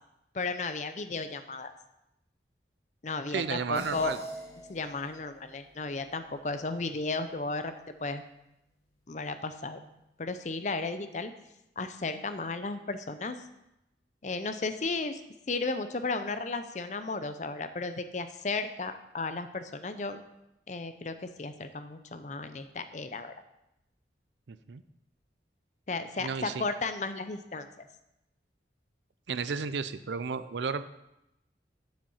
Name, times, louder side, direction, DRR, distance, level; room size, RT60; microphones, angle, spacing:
voice 1, 0.3-1.7 3.0-4.1 4.7-7.7 8.0-8.2 9.1-9.8 10.2-11.3 11.8-13.4 14.2-15.2 15.5-20.2 20.7-23.3 25.9-27.7, left 3 dB, 40° left, 10 dB, 0.6 m, -34 dB
voice 2, 3.3-4.2 24.5-24.8 26.2-26.6 29.3-30.8, right 5 dB, 80° right, 12 dB, 0.5 m, -33 dB
sound 1, 3.8-8.5, equal, 75° left, 2.7 m, -48 dB
7.4 x 7.3 x 5.6 m, 0.87 s
head